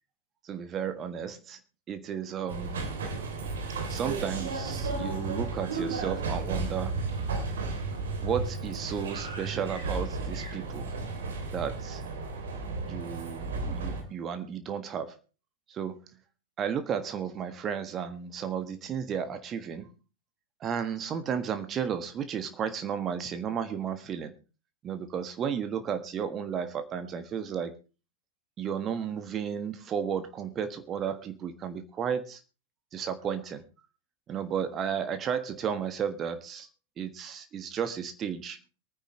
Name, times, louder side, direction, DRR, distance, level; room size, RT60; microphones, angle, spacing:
voice 1, 0.4-1.6 1.9-2.8 3.9-6.9 8.2-10.9 11.5-12.0 12.9-15.2 15.7-16.0 16.6-19.9 20.6-24.3 24.8-27.7 28.6-32.4 32.9-33.6 34.3-36.7 37.0-38.6, right 7 dB, 30° right, 9 dB, 1.5 m, -33 dB
sound 1, 2.5-14.0, right 3 dB, 65° right, 3.0 m, -33 dB
23.0 x 10.0 x 3.2 m, 0.33 s
figure-of-eight pair, 90°, 0 cm